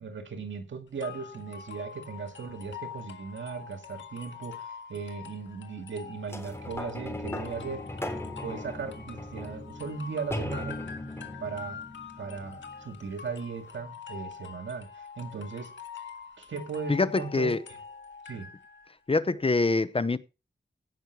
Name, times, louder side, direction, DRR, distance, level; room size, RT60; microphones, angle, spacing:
voice 1, 0.0-7.9 8.4-10.8 11.4-11.8 12.2-15.7 16.4-17.5 18.2-18.5, right 5 dB, 80° right, 2.1 m, -37 dB
sound 1, 1.0-18.9, left 6 dB, 80° left, 1.7 m, -45 dB
sound 2, 6.3-13.0 13.7-13.8, left 1 dB, 15° left, 3.6 m, -38 dB
voice 2, 16.9-17.6 19.1-20.2, left 3 dB, 30° left, 0.8 m, -25 dB
16.5 x 6.3 x 4.6 m
cardioid pair, 70°, 19 cm